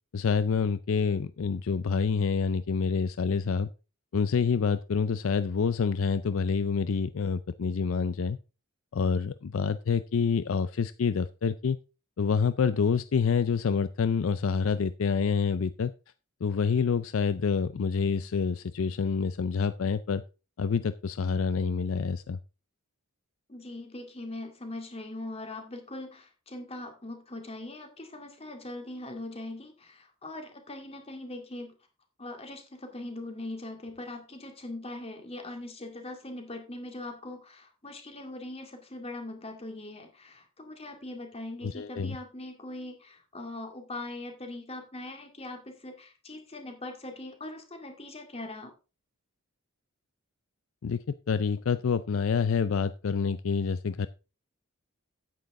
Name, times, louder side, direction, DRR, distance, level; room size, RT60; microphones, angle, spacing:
voice 1, 0.1-3.7 4.1-8.4 8.9-11.8 12.2-15.9 16.4-20.2 20.6-22.4 41.6-42.2 50.8-54.1, left 5 dB, 65° left, 14 dB, 0.4 m, -27 dB
voice 2, 23.5-31.8 32.2-48.7, left 2 dB, 25° left, 4 dB, 2.1 m, -41 dB
9.2 x 9.2 x 3.7 m, 0.32 s
head